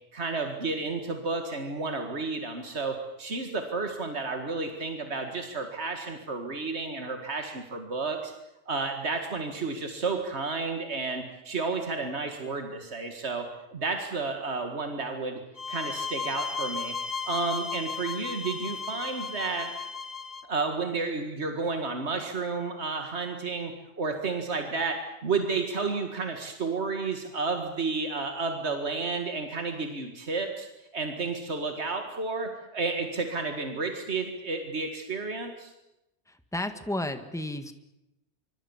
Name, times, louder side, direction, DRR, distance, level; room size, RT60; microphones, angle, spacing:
voice 1, 0.1-8.3 8.7-13.5 13.7-15.4 15.7-17.0 17.2-19.7 20.4-30.7 30.9-35.7, right 4 dB, 85° right, 4 dB, 2.3 m, -31 dB
sound 1, 15.6-20.5, left 5 dB, 40° left, 1.1 m, -35 dB
voice 2, 36.3-37.7, left 1 dB, 5° left, 8 dB, 1.6 m, -33 dB
25.5 x 24.5 x 7.2 m, 0.92 s
omnidirectional pair, 1.1 m